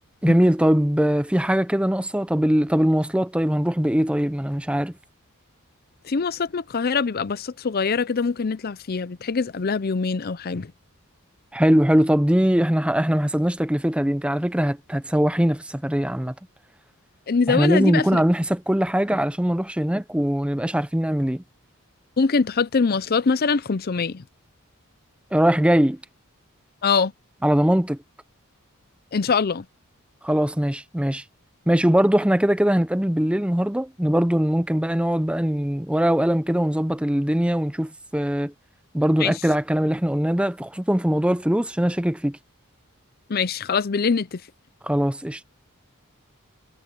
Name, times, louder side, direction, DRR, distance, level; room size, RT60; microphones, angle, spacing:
voice 1, 0.2-4.9 11.5-16.3 17.5-21.4 25.3-26.0 27.4-28.0 30.2-31.2 31.7-38.5 38.9-42.4 44.8-45.4, equal, 5° right, 0.6 m, -21 dB
voice 2, 6.0-10.7 17.3-18.2 22.2-24.2 26.8-27.1 29.1-29.6 39.2-39.3 43.3-44.4, left 5 dB, 45° left, 0.5 m, -23 dB
head